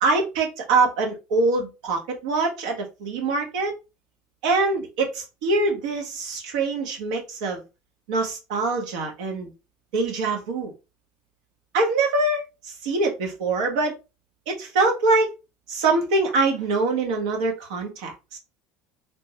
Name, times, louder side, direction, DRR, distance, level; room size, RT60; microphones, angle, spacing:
voice 1, 0.0-3.7 4.4-7.6 8.1-9.5 9.9-10.7 11.7-13.9 14.5-15.3 15.7-18.4, right 3 dB, 80° right, 0.9 m, -24 dB
3.3 x 2.1 x 2.8 m
supercardioid pair, 85°, 4 cm